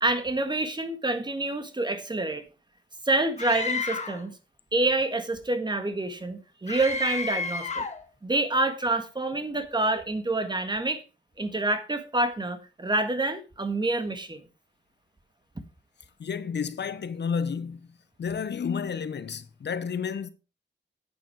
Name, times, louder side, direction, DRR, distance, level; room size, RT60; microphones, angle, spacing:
voice 1, 0.0-2.4 3.0-4.3 4.7-7.8 8.2-11.0 11.4-14.4, right 2 dB, 20° right, 1.7 m, -27 dB
Screaming, 3.4-4.3 6.7-8.0, left 4 dB, 35° left, 1.5 m, -31 dB
voice 2, 16.2-17.9 18.2-20.3, left 6 dB, 60° left, 0.9 m, -31 dB
10.5 x 9.2 x 4.6 m
wide cardioid pair, 125°, 20 cm